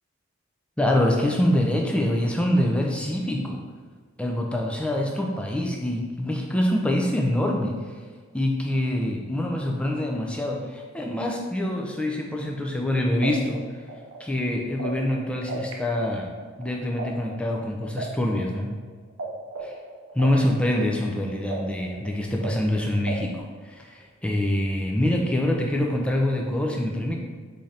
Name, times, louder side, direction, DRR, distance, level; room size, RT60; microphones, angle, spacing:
voice 1, 0.8-3.6 4.2-7.8 8.3-13.6 14.2-16.3 16.6-18.7 19.6-19.7 20.1-27.2, left 1 dB, 5° left, 0 dB, 0.3 m, -25 dB
sound 1, 12.8-12.9 13.2-15.7 16.0-19.2 19.5-23.4, right 3 dB, 75° right, 0.5 m, -36 dB
3.7 x 2.7 x 3.2 m, 1.5 s
head